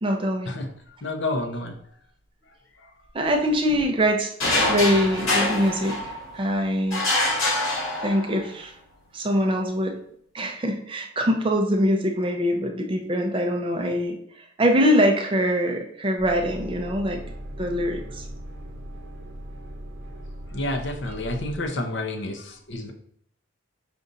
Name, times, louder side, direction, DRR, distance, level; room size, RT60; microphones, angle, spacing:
voice 1, 0.0-0.5 3.1-4.3 4.7-7.0 8.0-8.7 9.1-10.0 10.3-17.2 17.6-18.2, equal, 25° right, 3 dB, 0.5 m, -23 dB
voice 2, 1.0-1.8 2.8-2.9 20.5-22.9, left 2 dB, 55° left, 4 dB, 0.7 m, -29 dB
sound 1, 4.4-6.4 6.9-8.5, left 2 dB, 80° left, 1.8 m, -25 dB
sound 2, 16.2-21.6, equal, 60° right, 0.8 m, -38 dB
5.2 x 2.5 x 3.9 m, 0.65 s
head